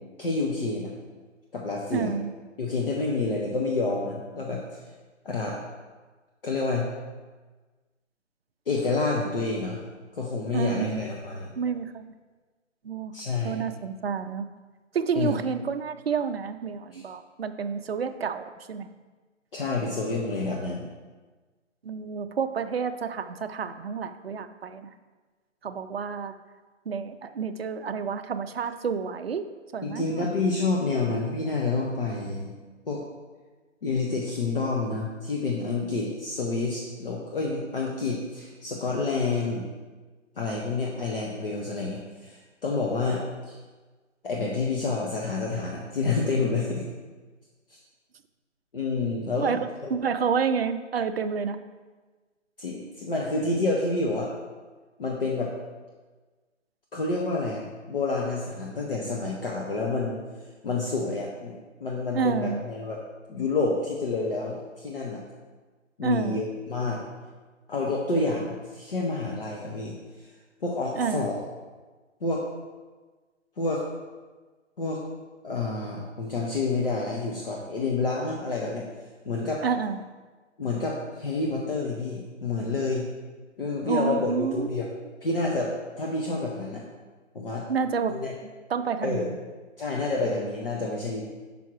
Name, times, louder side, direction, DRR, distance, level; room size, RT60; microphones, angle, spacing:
voice 1, 0.2-0.9 1.5-2.1 2.6-4.8 5.2-5.6 6.4-6.9 8.7-9.8 10.1-11.5 13.1-13.6 15.1-15.4 16.9-17.0 19.5-20.9 29.8-32.5 32.9-33.0 33.8-39.7 40.4-43.6 44.2-46.9 47.7-47.8 48.7-49.9 52.6-54.3 55.0-55.5 56.9-60.2 60.6-61.5 61.8-63.0 63.3-65.2 66.0-67.0 67.7-69.9 70.6-71.3 72.2-72.5 73.6-73.8 74.8-75.0 75.4-78.8 79.2-79.6 80.6-83.1 83.6-84.9 85.2-86.8 87.3-87.6 88.1-88.3 89.0-89.3 89.8-91.2, left 3 dB, 50° left, -2 dB, 0.9 m, -28 dB
voice 2, 1.9-2.3 10.5-11.1 11.6-12.1 12.8-13.2 13.4-14.5 14.9-18.9 21.8-24.9 25.6-26.3 26.9-29.4 29.7-30.3 49.4-51.6 62.1-62.6 66.0-66.4 70.9-71.3 79.6-80.0 83.8-84.7 87.7-88.2 88.7-89.4, right 6 dB, 55° right, 9 dB, 0.5 m, -29 dB
6.0 x 5.5 x 4.6 m, 1.3 s
hypercardioid pair, 175°, 37 cm